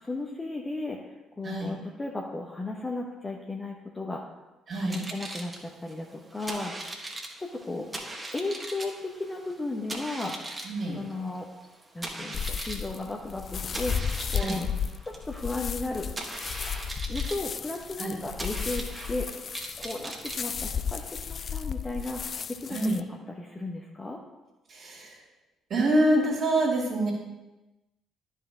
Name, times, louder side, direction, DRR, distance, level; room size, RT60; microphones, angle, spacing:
voice 1, 0.0-4.2 4.8-6.9 7.4-8.0 8.3-10.3 10.9-11.5 11.9-14.6 15.0-16.1 17.1-19.3 19.8-22.2 22.5-24.2, left 2 dB, 25° left, 0 dB, 0.9 m, -35 dB
sound 1, 4.7-21.1, right 1 dB, 20° right, 1.6 m, -40 dB
voice 2, 4.7-5.0 10.6-11.0 14.4-14.6 18.0-18.1 22.7-23.0 24.7-25.2 25.7-27.1, right 1 dB, 55° right, -8 dB, 2.5 m, -26 dB
sound 2, 12.3-23.0, left 7 dB, 45° left, 0.4 m, -34 dB
12.0 x 5.5 x 3.7 m, 1.1 s
figure-of-eight pair, 45°, 0 cm